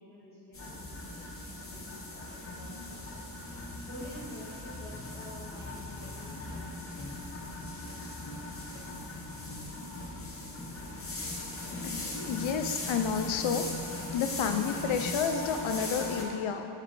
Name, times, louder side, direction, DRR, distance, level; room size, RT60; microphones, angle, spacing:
voice 1, 0.0-3.2 3.9-6.8, equal, 15° left, -12 dB, 1.6 m, -49 dB
sound 1, 0.5-16.2, left 2 dB, 30° left, 0.9 m, -39 dB
sound 2, 0.6-3.7, left 1 dB, 50° left, 1.4 m, -54 dB
voice 2, 11.8-13.6 14.1-16.7, left 7 dB, 80° left, 7 dB, 0.7 m, -30 dB
6.7 x 6.6 x 3.3 m, 2.6 s
wide cardioid pair, 125°, 46 cm